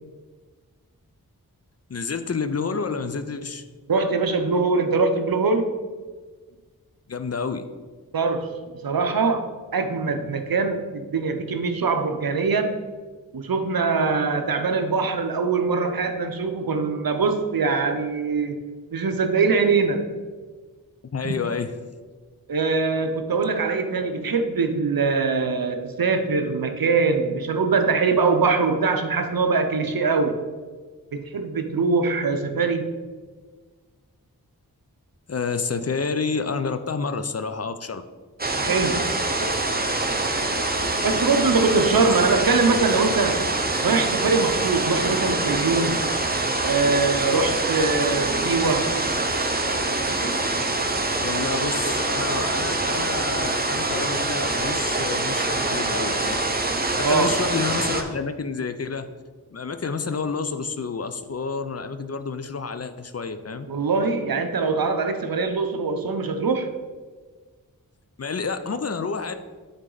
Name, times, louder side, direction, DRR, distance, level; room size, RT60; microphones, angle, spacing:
voice 1, 1.9-3.6 7.1-7.7 21.1-21.7 35.3-38.0 42.0-42.1 51.2-56.4 57.0-59.1 59.5-63.7 68.2-69.4, left 5 dB, 45° left, 10 dB, 0.5 m, -29 dB
voice 2, 3.9-5.7 8.1-12.8 13.3-18.6 18.9-20.1 21.2-21.3 22.5-30.4 31.1-32.9 38.6-39.2 41.0-43.5 43.8-46.0 46.6-48.9 57.0-57.3 63.7-66.7, right 4 dB, 70° right, 7 dB, 0.7 m, -23 dB
sound 1, 38.4-58.0, right 2 dB, 25° right, 0.8 m, -25 dB
9.5 x 4.0 x 3.9 m, 1.4 s
cardioid pair, 40°, 36 cm